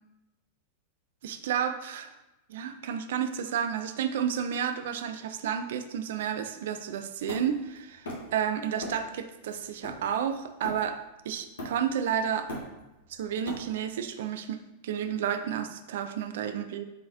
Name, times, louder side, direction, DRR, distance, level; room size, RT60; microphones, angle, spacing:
voice 1, 1.2-2.1 2.5-11.0 11.3-12.5 13.1-16.8, right 8 dB, 55° right, 9 dB, 0.3 m, -31 dB
Hammer, 7.3-8.4 8.8-9.1 9.5-11.1 11.6-12.0 12.3-14.0, left 1 dB, 65° left, 1.2 m, -40 dB
4.9 x 3.8 x 2.7 m, 0.97 s
figure-of-eight pair, 90°, 0 cm